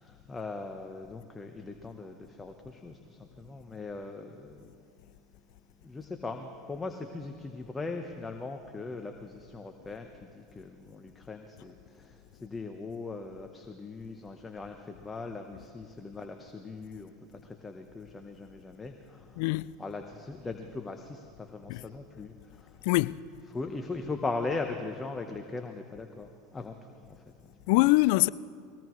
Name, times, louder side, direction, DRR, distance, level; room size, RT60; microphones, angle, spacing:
voice 1, 0.0-4.9 5.8-19.5 19.8-22.9 23.5-27.6, left 3 dB, 15° left, 1.0 m, -40 dB
voice 2, 19.4-19.8 21.7-21.8 22.8-23.2 27.7-28.3, left 21 dB, 70° left, 0.3 m, -23 dB
22.0 x 18.0 x 3.2 m
hypercardioid pair, 100°, 0 cm